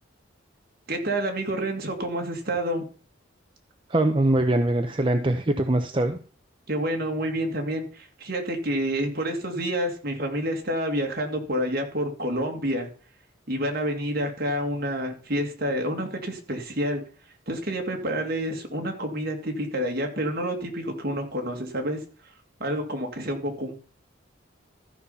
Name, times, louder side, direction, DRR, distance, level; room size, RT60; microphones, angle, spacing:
voice 1, 0.9-2.8 6.7-12.9 13.5-17.0 17.5-22.3 22.6-23.8, equal, 55° right, 3 dB, 2.3 m, -28 dB
voice 2, 3.9-6.2, right 1 dB, 25° right, 5 dB, 0.7 m, -22 dB
13.5 x 5.6 x 5.6 m, 0.41 s
head